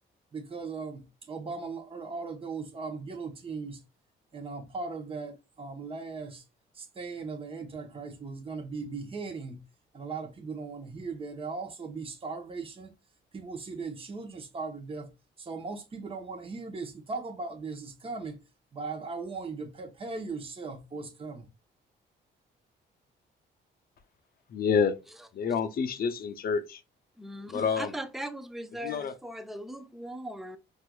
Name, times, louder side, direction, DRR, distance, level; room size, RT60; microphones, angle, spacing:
voice 1, 0.3-3.8 4.3-6.4 6.7-9.6 9.9-12.9 13.3-15.1 15.4-18.4 18.7-21.5, right 4 dB, 25° right, 0.8 m, -38 dB
voice 2, 24.5-24.9 25.3-26.8 27.5-27.9 28.8-29.1, left 6 dB, 50° left, 0.6 m, -28 dB
voice 3, 27.2-30.6, equal, ahead, 0.4 m, -39 dB
4.4 x 2.4 x 2.3 m
cardioid pair, 90°, 20 cm